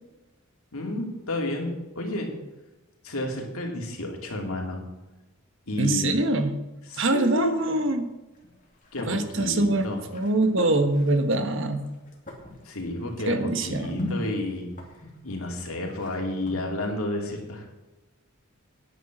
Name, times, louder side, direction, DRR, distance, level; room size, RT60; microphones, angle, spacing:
voice 1, 0.7-1.7 1.9-2.3 3.0-4.8 5.7-6.1 6.9-7.6 8.9-10.0 12.6-14.7 15.2-17.7, left 1 dB, 85° left, 0 dB, 2.9 m, -31 dB
voice 2, 5.8-6.5 7.0-8.1 9.1-11.8 13.3-14.0, right 2 dB, 60° right, 8 dB, 1.3 m, -24 dB
sound 1, 8.3-9.4 9.7-14.2 14.4-16.6, left 2 dB, 35° left, 2.5 m, -40 dB
10.0 x 9.3 x 6.1 m, 1.1 s
head